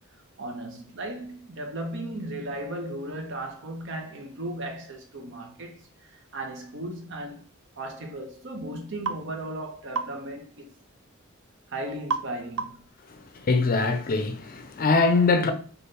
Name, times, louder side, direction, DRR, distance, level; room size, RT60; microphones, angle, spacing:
voice 1, 0.4-7.5 7.8-10.7 11.7-12.8, right 1 dB, 60° right, 0.8 m, -36 dB
sound 1, 9.1-9.2 9.9-10.2 12.1-12.3 12.6-12.9, right 5 dB, 85° right, 0.5 m, -29 dB
voice 2, 13.5-15.5, left 3 dB, 45° left, 0.5 m, -22 dB
4.1 x 2.4 x 3.2 m
head